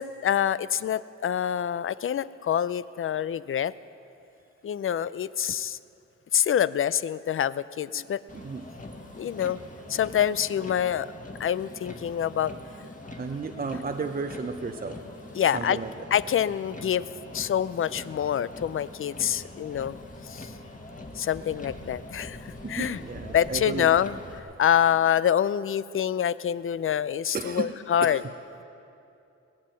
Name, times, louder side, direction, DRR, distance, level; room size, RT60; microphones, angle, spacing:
voice 1, 0.0-3.7 4.6-5.8 6.3-8.2 9.2-9.6 9.9-11.1 11.4-12.5 15.4-15.8 16.1-17.1 17.3-20.0 20.3-20.5 21.2-23.0 23.3-28.2, left 9 dB, 45° left, 18 dB, 0.4 m, -26 dB
Motor vehicle (road), 8.3-24.4, left 2 dB, 25° left, 1.7 m, -43 dB
voice 2, 8.3-8.7 12.8-12.9 13.2-15.0 15.4-16.1 22.6-24.0 27.3-27.8 28.0-28.2, right 4 dB, 30° right, 5 dB, 0.6 m, -34 dB
19.0 x 7.6 x 9.1 m, 2.7 s
cardioid pair, 85°, 29 cm